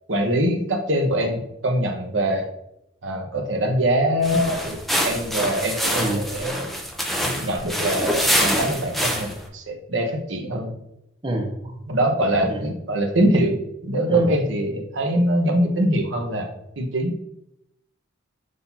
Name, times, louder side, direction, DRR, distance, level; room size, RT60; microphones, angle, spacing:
voice 1, 0.1-2.5 3.0-4.8 5.0-6.7 7.2-10.7 11.9-16.5 16.8-17.1, right 1 dB, 75° right, 2 dB, 1.1 m, -23 dB
sound 1, 4.2-9.5, equal, ahead, 0.7 m, -25 dB
voice 2, 11.2-11.7 12.5-12.6 14.1-14.3, right 1 dB, 25° right, 2 dB, 1.0 m, -27 dB
6.6 x 2.8 x 5.7 m, 0.81 s
head